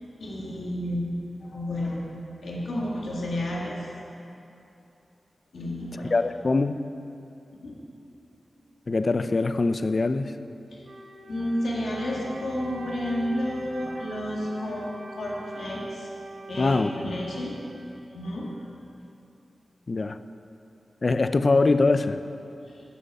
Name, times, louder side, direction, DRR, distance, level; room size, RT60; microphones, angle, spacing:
voice 1, 0.2-1.0 1.4-2.0 2.4-3.9 5.5-6.2 7.6-7.8 10.7-10.8 11.3-16.1 16.5-17.6 18.1-18.5 22.7-22.8, left 1 dB, 85° left, -3 dB, 1.9 m, -31 dB
voice 2, 6.1-6.9 8.9-10.3 16.6-17.2 19.9-20.2 21.0-22.2, left 3 dB, 50° left, 11 dB, 0.4 m, -23 dB
Wind instrument woodwind instrument, 10.8-18.4, right 2 dB, 70° right, 1.0 m, -43 dB
11.0 x 7.1 x 5.4 m, 2.7 s
cardioid pair, 60°, 0 cm